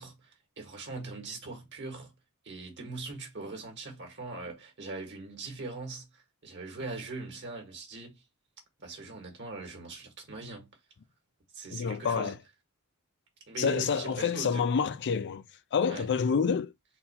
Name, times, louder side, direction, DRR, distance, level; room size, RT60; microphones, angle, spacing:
voice 1, 0.0-2.1 2.4-8.2 8.8-10.7 11.5-12.4 13.5-14.7 15.9-16.1, right 3 dB, 55° right, 1.6 m, -41 dB
voice 2, 11.7-12.3 13.6-15.4 15.7-16.7, left 6 dB, 50° left, 0.4 m, -28 dB
4.0 x 2.7 x 4.1 m
head